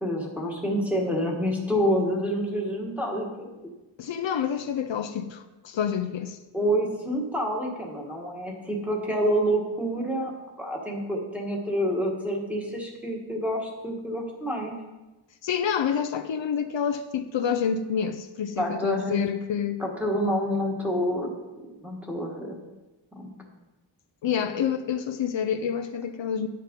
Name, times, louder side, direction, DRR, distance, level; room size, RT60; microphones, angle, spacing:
voice 1, 0.0-3.5 6.5-10.3 10.6-14.7 18.6-19.2 19.8-21.3 21.6-22.6 23.1-23.3, equal, 5° right, 1.5 m, -28 dB
voice 2, 4.0-6.4 15.4-19.8 24.2-26.5, left 7 dB, 70° left, 0.6 m, -28 dB
10.5 x 6.7 x 5.2 m
wide cardioid pair, 180°, 47 cm